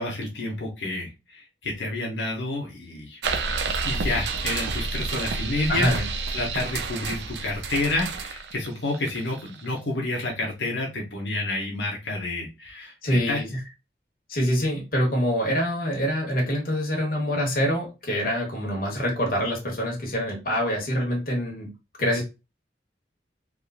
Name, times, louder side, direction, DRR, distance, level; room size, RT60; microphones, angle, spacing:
voice 1, 0.0-3.2 3.5-6.1 6.3-13.4, left 2 dB, 90° left, -1 dB, 1.0 m, -29 dB
sound 1, 3.2-9.8, right 4 dB, 75° right, 0.5 m, -30 dB
voice 2, 5.7-6.1 13.0-13.5 14.3-21.7 22.0-22.2, equal, 55° left, -1 dB, 1.2 m, -25 dB
3.5 x 2.5 x 2.4 m, 0.26 s
head